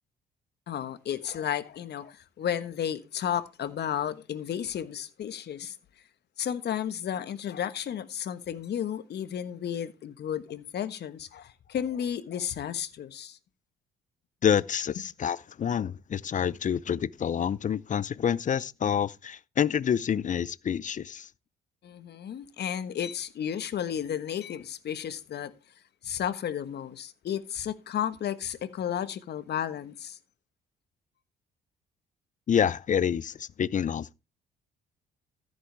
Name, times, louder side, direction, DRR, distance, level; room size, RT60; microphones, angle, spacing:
voice 1, 0.7-5.7 6.4-13.4 15.0-15.1 21.8-25.5 26.0-30.2, left 9 dB, 55° left, 1.3 m, -33 dB
voice 2, 14.4-21.3 32.5-34.1, left 8 dB, 40° left, 0.6 m, -27 dB
14.0 x 8.1 x 3.4 m
hypercardioid pair, 55°, 20 cm